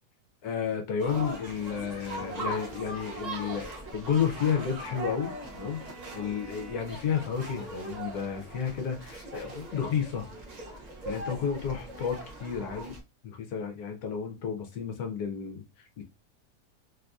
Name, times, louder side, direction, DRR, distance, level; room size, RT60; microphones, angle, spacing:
voice 1, 0.4-5.8 6.1-10.3 11.1-13.0 13.2-16.0, left 7 dB, 70° left, 1.1 m, -32 dB
sound 1, 1.0-13.0, right 1 dB, 65° right, 0.4 m, -40 dB
sound 2, 2.2-8.9 9.1-9.2 9.5-9.6 10.3-10.4 10.7-11.9, left 2 dB, 35° right, 1.0 m, -53 dB
Bowed string instrument, 4.1-7.2, right 5 dB, 80° right, 1.4 m, -51 dB
3.4 x 2.6 x 2.3 m
omnidirectional pair, 1.8 m